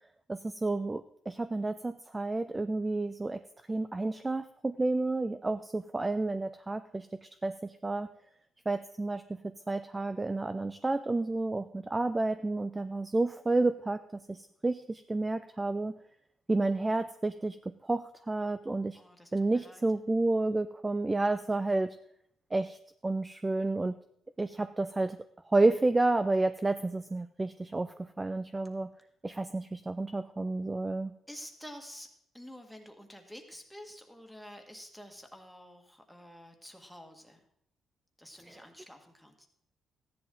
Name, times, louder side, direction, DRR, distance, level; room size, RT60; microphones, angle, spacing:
voice 1, 0.3-3.4 3.7-7.1 7.4-8.1 8.7-9.2 9.7-14.0 14.3-15.9 16.5-17.6 17.8-19.0 19.3-22.0 22.5-22.8 23.0-24.0 24.4-25.2 25.5-28.9 29.2-31.1, right 2 dB, 20° right, 11 dB, 0.4 m, -30 dB
voice 2, 18.9-19.8 31.3-32.1 32.3-37.4 38.2-39.3, equal, ahead, 3 dB, 1.7 m, -49 dB
14.0 x 10.5 x 3.8 m, 0.71 s
cardioid pair, 90°, 0 cm